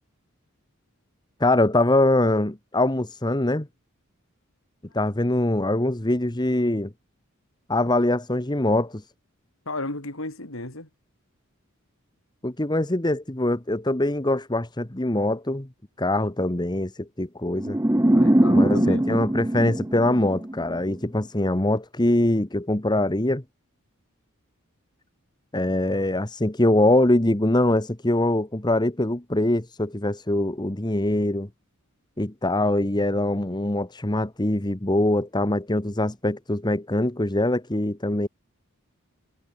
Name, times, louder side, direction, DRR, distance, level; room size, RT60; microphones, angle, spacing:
voice 1, 1.4-3.7 4.9-6.9 7.7-9.0 12.4-15.7 16.0-17.8 18.5-23.4 25.5-31.5 32.2-38.3, left 1 dB, 20° left, 1.4 m, -23 dB
voice 2, 9.7-10.9 18.1-19.2, left 2 dB, 70° left, 3.9 m, -34 dB
sound 1, 17.6-20.8, right 1 dB, 15° right, 0.8 m, -21 dB
head